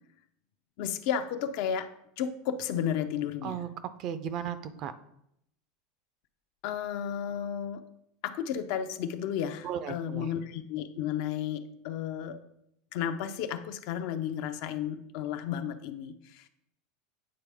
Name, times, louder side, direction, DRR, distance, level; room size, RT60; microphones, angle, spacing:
voice 1, 0.8-3.6 6.6-7.8 8.2-12.4 12.9-16.5, left 9 dB, 60° left, 9 dB, 0.5 m, -33 dB
voice 2, 3.4-4.9 9.6-10.3, right 9 dB, 40° right, 13 dB, 0.4 m, -36 dB
8.6 x 4.1 x 3.5 m, 0.77 s
supercardioid pair, 145°, 0 cm